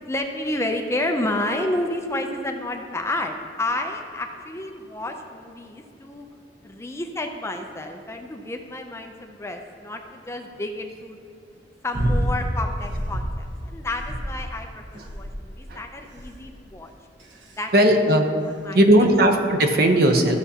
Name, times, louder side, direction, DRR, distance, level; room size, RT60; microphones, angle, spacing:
voice 1, 0.0-6.3 6.6-11.2 11.8-16.9 17.6-17.8 18.6-19.2, left 1 dB, 15° left, 4 dB, 0.5 m, -30 dB
sound 1, 11.9-12.4 12.8-13.4 13.9-14.6 15.0-15.5 16.2-16.5 17.2-17.6 18.5-18.6, equal, 80° right, 1.0 m, -27 dB
voice 2, 17.7-18.2 18.7-20.4, right 1 dB, 55° right, 5 dB, 0.8 m, -17 dB
14.0 x 6.9 x 2.8 m, 2.4 s
head